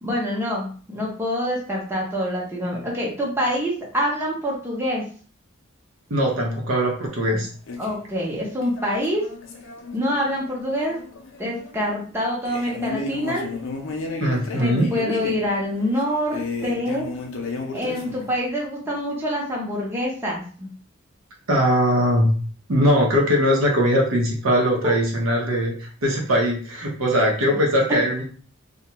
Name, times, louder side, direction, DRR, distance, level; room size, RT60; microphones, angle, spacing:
voice 1, 0.0-5.0 7.3-7.4 7.8-9.2 9.9-11.0 11.4-13.5 14.5-17.1 17.7-20.7 24.8-24.9 27.9-28.0, equal, 10° right, -4 dB, 0.6 m, -26 dB
voice 2, 6.1-7.5 14.2-14.9 21.5-22.3 22.7-28.2, equal, 85° right, -1 dB, 0.7 m, -20 dB
sound 1, 7.7-8.1 8.6-12.1 12.4-18.4, left 3 dB, 70° left, 0.5 m, -33 dB
2.4 x 2.1 x 2.9 m, 0.42 s
head